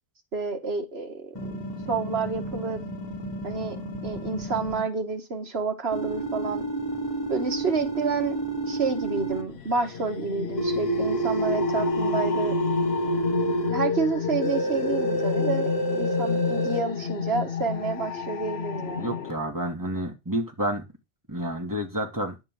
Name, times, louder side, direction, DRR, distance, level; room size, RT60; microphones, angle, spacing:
voice 1, 0.3-1.5 1.9-2.8 3.4-6.6 7.3-8.4 8.7-12.6 13.7-19.2, right 4 dB, 80° right, 5 dB, 2.0 m, -29 dB
sound 1, 1.3-4.8 5.9-9.4 10.6-13.7 14.4-16.8, right 2 dB, 25° left, 3.1 m, -29 dB
sound 2, 9.1-19.3, left 7 dB, 85° left, 1.1 m, -30 dB
voice 2, 19.0-20.8 21.3-22.4, right 1 dB, 20° right, 1 dB, 2.5 m, -29 dB
11.0 x 6.0 x 7.7 m, 0.25 s
omnidirectional pair, 1.0 m